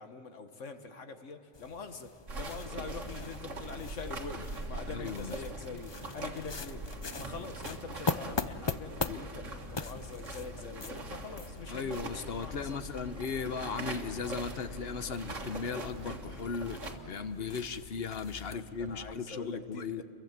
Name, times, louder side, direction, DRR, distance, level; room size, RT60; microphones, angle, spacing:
voice 1, 0.0-6.8 7.2-12.0 12.4-12.8 18.5-20.0, left 4 dB, 70° left, 7 dB, 1.8 m, -44 dB
sound 1, 1.5-19.2, left 4 dB, 35° left, 0.4 m, -42 dB
sound 2, 2.3-17.0, right 2 dB, 70° right, 2.1 m, -42 dB
voice 2, 4.9-5.4 5.7-5.8 9.1-9.2 11.7-16.8 17.1-20.0, left 5 dB, 55° left, 11 dB, 1.1 m, -37 dB
29.0 x 23.0 x 7.4 m, 2.9 s
omnidirectional pair, 1.3 m